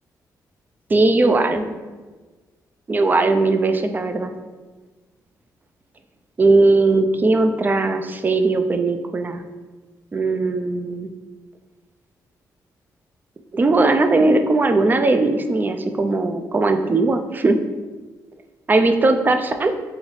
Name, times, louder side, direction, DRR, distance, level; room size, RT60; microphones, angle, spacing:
voice 1, 0.9-1.8 2.9-4.3 6.4-9.4 10.1-11.1 13.5-17.6 18.7-19.7, right 2 dB, 25° right, 7 dB, 0.4 m, -18 dB
4.0 x 3.9 x 3.2 m, 1.3 s
cardioid pair, 95°, 7 cm